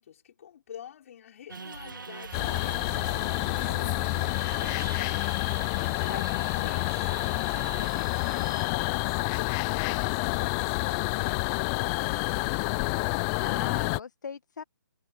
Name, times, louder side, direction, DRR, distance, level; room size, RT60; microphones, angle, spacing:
voice 1, 0.0-5.5 5.9-7.3 7.7-12.7, left 9 dB, 45° left, 5.0 m, -47 dB
sound 1, 1.5-11.5, right 4 dB, 75° right, 1.9 m, -44 dB
sound 2, 2.3-14.0, left 31 dB, 15° left, 0.3 m, -28 dB
voice 2, 6.1-6.7 13.4-14.6, left 6 dB, 60° left, 1.3 m, -40 dB
figure-of-eight pair, 150°, 11 cm